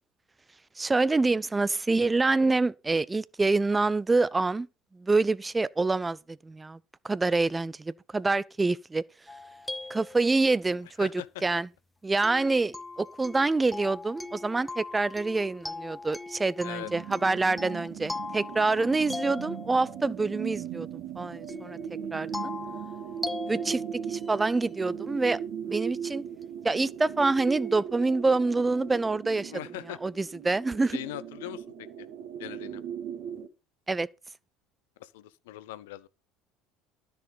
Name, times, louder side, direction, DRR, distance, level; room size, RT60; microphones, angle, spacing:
voice 1, 0.8-4.7 5.0-6.2 6.4-6.8 7.0-9.0 9.9-11.1 11.4-11.7 12.0-20.9 21.2-21.8 22.1-22.5 23.5-23.8 24.1-25.4 25.7-26.2 26.6-29.5 30.0-31.0 33.9-34.1, right 3 dB, 15° right, 0.5 m, -26 dB
sound 1, 9.3-10.7 12.2-20.1 21.5-24.8 26.4-26.5 27.4-27.8, left 3 dB, 10° left, 0.8 m, -40 dB
sound 2, 16.8-33.5, right 8 dB, 55° right, 1.6 m, -38 dB
voice 2, 29.5-30.0 30.9-31.6 32.0-32.1 32.4-32.8 35.0-36.1, left 15 dB, 65° left, 0.7 m, -40 dB
12.5 x 6.8 x 5.5 m
figure-of-eight pair, 65°, 0 cm